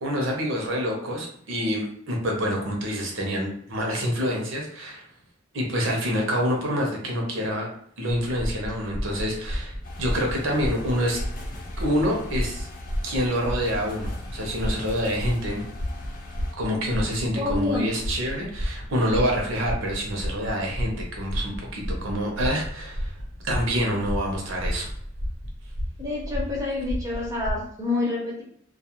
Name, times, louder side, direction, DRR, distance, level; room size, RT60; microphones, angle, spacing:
voice 1, 0.0-5.1 5.5-7.7 8.0-11.2 11.8-12.7 13.0-15.6 16.6-23.1 23.4-24.9, equal, 75° right, 0 dB, 0.7 m, -27 dB
sound 1, 8.4-27.5, equal, 75° left, 0.7 m, -33 dB
sound 2, 9.8-16.5, left 2 dB, 40° left, 0.4 m, -42 dB
voice 2, 17.3-17.9 26.0-28.4, left 3 dB, 15° right, -4 dB, 0.5 m, -28 dB
2.3 x 2.2 x 2.9 m, 0.64 s
head